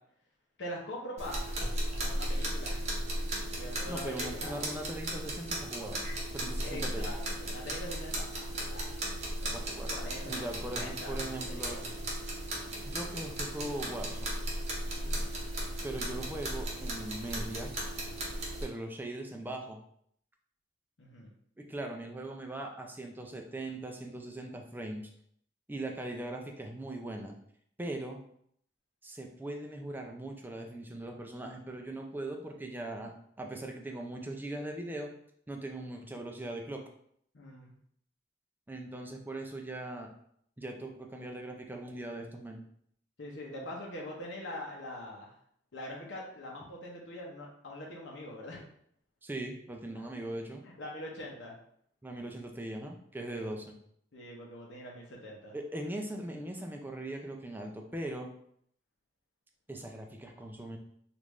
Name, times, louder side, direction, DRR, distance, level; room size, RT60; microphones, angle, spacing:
voice 1, 0.6-1.7 2.0-2.9 3.5-4.5 6.6-9.0 9.4-11.8 14.9-15.3 21.0-21.3 37.3-37.7 43.2-45.3 45.7-48.6 49.9-50.0 50.6-51.5 53.3-53.5 54.1-55.6, left 1 dB, 70° left, -2 dB, 0.7 m, -43 dB
sound 1, 1.2-18.7, right 1 dB, 40° right, 0.8 m, -36 dB
voice 2, 3.9-6.0 6.3-7.1 9.5-10.0 10.3-11.8 12.9-14.3 15.8-17.7 18.6-19.8 21.6-25.1 25.7-27.4 27.8-28.2 29.0-35.1 35.5-36.8 38.7-40.1 40.6-42.6 49.2-50.6 52.0-53.7 55.5-58.3 59.7-60.8, right 1 dB, 10° right, 2 dB, 0.4 m, -40 dB
3.4 x 2.5 x 3.1 m, 0.67 s
head